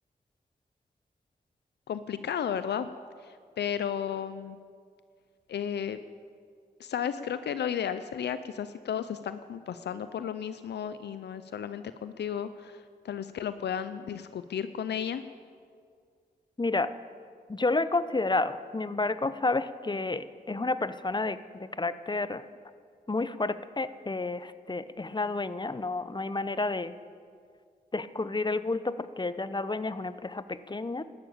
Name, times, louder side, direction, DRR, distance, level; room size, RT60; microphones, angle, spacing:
voice 1, 1.9-2.9 3.2-4.6 5.5-6.0 6.8-15.2, left 8 dB, 85° left, 12 dB, 0.5 m, -33 dB
voice 2, 16.6-16.9 17.5-22.4 23.1-27.0 27.9-31.0, left 3 dB, 25° left, 13 dB, 0.8 m, -30 dB
12.5 x 12.0 x 8.7 m, 2.1 s
cardioid pair, 40°, 17 cm